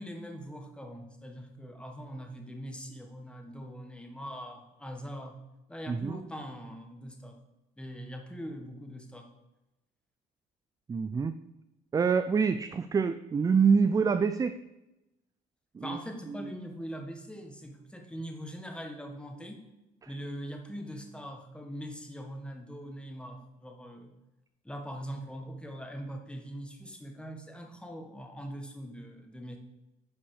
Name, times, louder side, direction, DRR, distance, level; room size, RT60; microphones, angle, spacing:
voice 1, 0.0-5.4 5.7-7.4 7.8-9.3 15.8-19.7 20.1-24.1 24.6-29.6, equal, 5° left, 3 dB, 1.5 m, -42 dB
voice 2, 5.9-6.2 10.9-11.3 11.9-14.6 15.7-16.0, right 5 dB, 20° right, 11 dB, 0.4 m, -26 dB
10.0 x 5.7 x 4.9 m, 0.95 s
cardioid pair, 110°, 17 cm